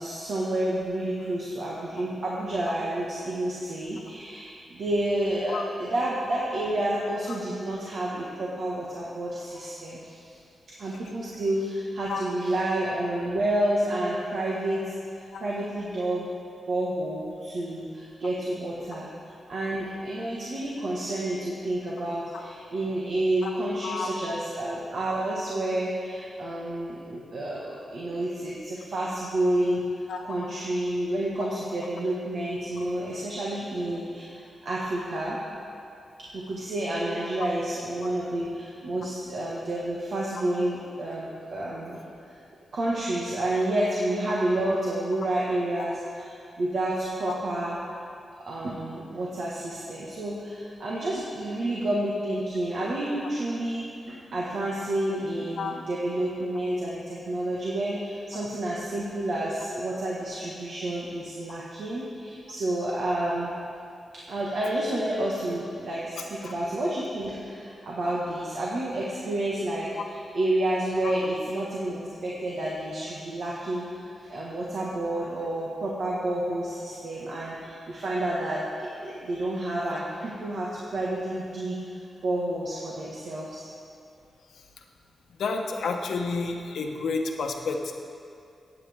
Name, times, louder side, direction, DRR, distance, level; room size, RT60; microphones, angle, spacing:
voice 1, 0.0-10.3 10.8-16.3 16.7-19.1 19.5-29.8 30.2-35.4 36.3-42.0 42.3-42.4 42.7-47.8 48.5-63.5 64.3-83.7, right 1 dB, 65° right, -5 dB, 1.6 m, -29 dB
voice 2, 85.4-87.9, left 4 dB, 85° left, 2 dB, 1.0 m, -30 dB
18.0 x 8.6 x 3.6 m, 2.4 s
wide cardioid pair, 115°, 0 cm